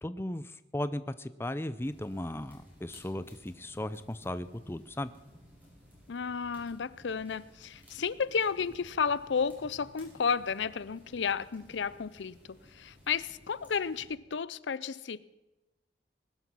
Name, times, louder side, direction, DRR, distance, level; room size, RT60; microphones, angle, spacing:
voice 1, 0.0-5.1, left 1 dB, 15° left, 0.5 m, -36 dB
sound 1, 1.8-14.1, equal, 10° right, 6.4 m, -57 dB
voice 2, 6.1-15.2, left 6 dB, 85° left, 0.6 m, -32 dB
20.5 x 12.0 x 5.6 m
head